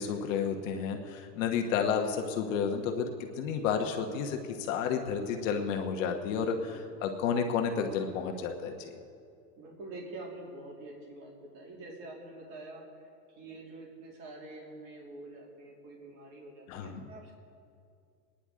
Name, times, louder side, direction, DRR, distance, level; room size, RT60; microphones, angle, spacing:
voice 1, 0.0-3.1 3.4-6.7 7.0-8.9 16.7-17.1, left 6 dB, 50° left, 4 dB, 1.3 m, -31 dB
voice 2, 6.4-7.1 9.6-17.3, right 2 dB, 35° right, -2 dB, 2.9 m, -46 dB
23.5 x 10.0 x 3.7 m, 2.4 s
supercardioid pair, 145°, 50 cm